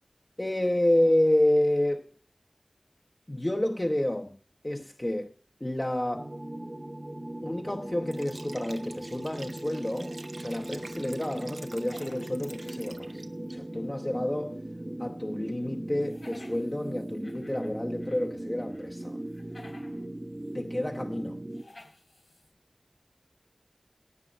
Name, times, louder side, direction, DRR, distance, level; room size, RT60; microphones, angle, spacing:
voice 1, 0.4-2.1 3.3-4.4 4.6-5.3 5.6-6.3 7.4-13.2 13.5-14.6 15.0-19.2 20.5-21.4, left 1 dB, 30° left, 1.0 m, -29 dB
sound 1, 6.1-21.6, right 1 dB, 35° right, 1.0 m, -39 dB
Liquid, 8.0-13.5, right 2 dB, 85° right, 1.1 m, -48 dB
sound 2, 10.0-11.1 11.4-13.8 14.2-14.3 15.9-18.3 18.6-20.1 20.4-20.5 21.5-22.5, left 2 dB, 65° left, 3.4 m, -55 dB
18.0 x 6.1 x 7.1 m
wide cardioid pair, 40°, 0 cm